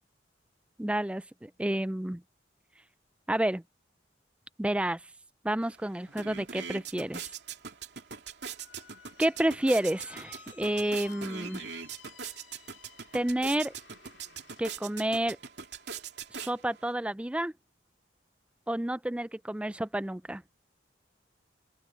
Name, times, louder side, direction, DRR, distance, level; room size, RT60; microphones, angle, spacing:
voice 1, 0.8-2.2 3.3-3.6 4.6-5.0 5.4-7.3 9.2-11.6 13.1-13.7 14.6-15.4 16.3-17.5 18.7-20.4, right 1 dB, 5° right, 0.3 m, -30 dB
sound 1, 5.6-5.7 6.0-16.9, right 6 dB, 65° right, 2.6 m, -42 dB
Squeak, 8.6-14.7, left 6 dB, 75° left, 2.7 m, -54 dB
open air
head